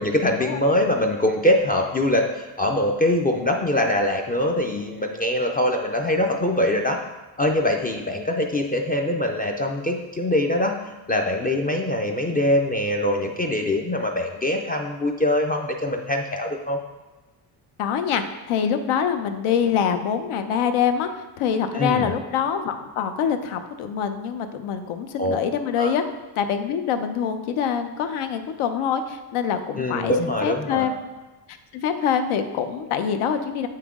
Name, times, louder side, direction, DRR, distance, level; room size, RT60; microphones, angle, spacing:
voice 1, 0.0-7.0 7.4-10.7 11.1-16.8 21.7-22.1 25.2-25.4 25.8-25.9 29.8-30.9, left 1 dB, 20° left, 2 dB, 0.3 m, -23 dB
voice 2, 17.8-26.0 26.4-30.9 31.7-33.7, left 7 dB, 85° left, 8 dB, 0.8 m, -25 dB
7.9 x 5.8 x 3.6 m, 1.1 s
cardioid pair, 150°, 48 cm